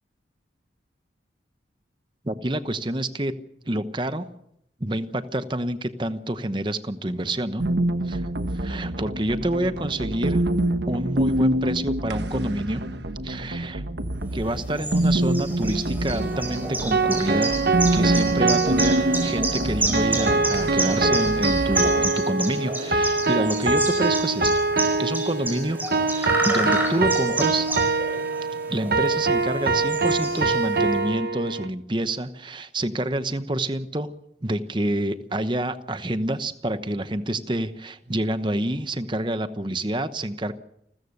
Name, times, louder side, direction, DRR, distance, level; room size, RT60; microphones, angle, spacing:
voice 1, 2.2-3.3 3.7-4.2 4.8-7.6 8.0-10.4 10.9-12.8 13.2-13.8 14.1-17.6 17.9-24.7 25.0-27.7 28.7-34.1 34.4-40.5, right 1 dB, 25° right, 11 dB, 1.0 m, -28 dB
sound 1, 7.6-22.1, right 1 dB, 75° right, 1.4 m, -26 dB
sound 2, 14.4-30.9, right 2 dB, 10° right, 4.8 m, -31 dB
sound 3, 16.2-31.7, right 3 dB, 55° right, 1.2 m, -24 dB
29.5 x 14.0 x 6.7 m, 0.75 s
head